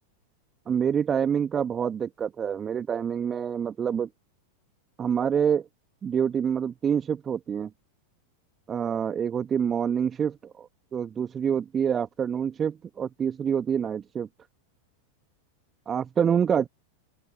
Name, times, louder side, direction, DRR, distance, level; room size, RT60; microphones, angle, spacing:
voice 1, 0.7-4.1 5.0-5.7 6.0-7.7 8.7-14.3 15.9-16.7, right 7 dB, 20° right, 1.6 m, -26 dB
open air
figure-of-eight pair, 90°, 0 cm